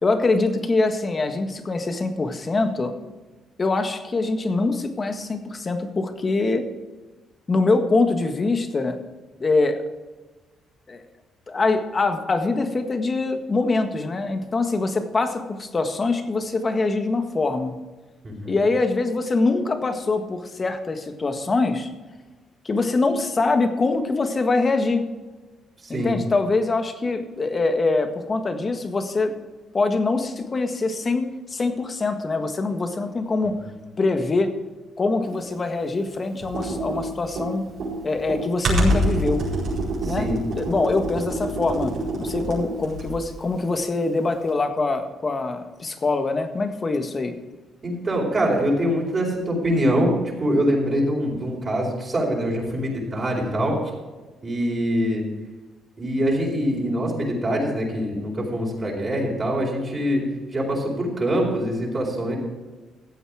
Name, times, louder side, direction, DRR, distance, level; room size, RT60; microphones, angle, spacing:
voice 1, 0.0-2.9 3.6-6.7 7.5-9.0 9.4-9.8 10.9-11.0 11.5-17.8 18.4-21.9 22.6-25.1 25.9-29.3 29.7-33.6 34.0-34.5 35.0-37.6 38.0-39.4 40.0-40.3 40.5-47.3, left 3 dB, 35° left, 7 dB, 1.6 m, -23 dB
voice 2, 18.2-18.6 25.8-26.2 40.0-40.4 47.8-53.8 54.4-55.2 56.0-60.2 60.5-62.3, equal, 35° right, -3 dB, 4.4 m, -24 dB
Computer keyboard, 36.4-43.3, right 1 dB, 65° right, 4.7 m, -26 dB
15.0 x 8.1 x 4.9 m, 1.2 s
cardioid pair, 90°, 0 cm